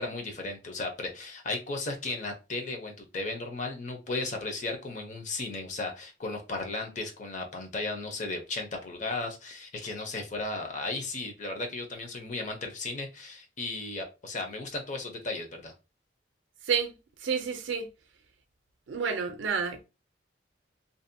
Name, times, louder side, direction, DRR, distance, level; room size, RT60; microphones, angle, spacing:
voice 1, 0.0-15.7, left 3 dB, 40° left, 0.6 m, -35 dB
voice 2, 17.2-17.9 18.9-19.8, right 6 dB, 70° right, 0.4 m, -29 dB
2.6 x 2.0 x 2.6 m
head